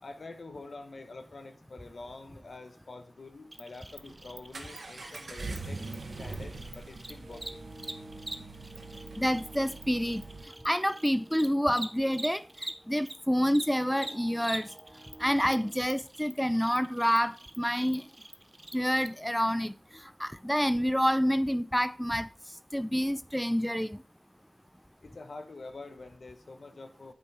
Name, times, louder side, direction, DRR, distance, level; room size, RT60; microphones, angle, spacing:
voice 1, 0.0-5.8 6.2-7.7 25.0-27.1, left 3 dB, 75° left, 0.9 m, -46 dB
Cricket, 3.5-13.1 13.4-19.1, right 1 dB, 30° right, 0.8 m, -44 dB
Accelerating revving vroom, 3.9-10.5, right 3 dB, 90° right, 0.9 m, -43 dB
sound 1, 4.9-15.7, right 1 dB, 75° right, 3.2 m, -53 dB
voice 2, 9.2-10.2 10.6-12.4 12.9-14.7 15.2-18.0 18.7-19.7 20.2-22.3 22.7-24.0, equal, 5° left, 0.3 m, -28 dB
8.2 x 5.2 x 3.3 m
wide cardioid pair, 50°, 0 cm